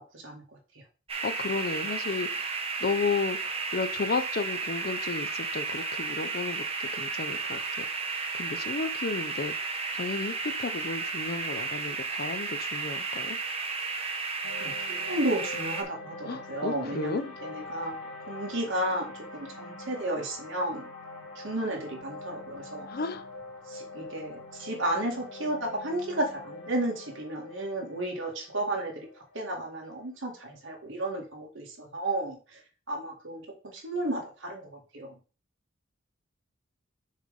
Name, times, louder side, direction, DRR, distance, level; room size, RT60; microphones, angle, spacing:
sound 1, 1.1-15.8, right 4 dB, 30° right, 1.1 m, -33 dB
voice 1, 1.2-2.5 2.8-7.9 8.3-13.4 16.3-17.3 22.9-23.3, left 4 dB, 50° left, 0.6 m, -33 dB
sound 2, 14.4-30.7, left 2 dB, 75° left, 2.2 m, -44 dB
voice 2, 15.1-20.9 21.4-22.9 23.7-29.1 29.3-32.4 32.9-33.4 33.7-35.1, right 1 dB, 70° right, 2.2 m, -33 dB
6.5 x 3.3 x 5.2 m
head